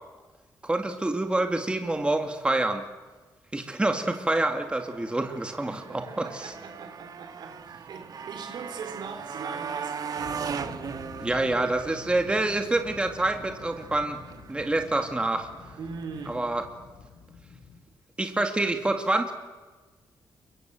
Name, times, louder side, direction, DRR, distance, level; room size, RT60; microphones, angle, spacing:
voice 1, 0.6-2.8 3.5-6.5 11.2-14.2 14.5-15.5 16.3-16.6 18.2-19.3, right 2 dB, 15° right, 2.2 m, -27 dB
Motorcycle, 4.3-16.4, right 6 dB, 55° right, 1.4 m, -39 dB
voice 2, 5.7-11.3 15.8-16.5, right 5 dB, 75° right, 4.1 m, -41 dB
sound 1, 10.2-17.8, left 5 dB, 75° left, 7.8 m, -47 dB
29.0 x 24.0 x 7.8 m
wide cardioid pair, 125°, 8 cm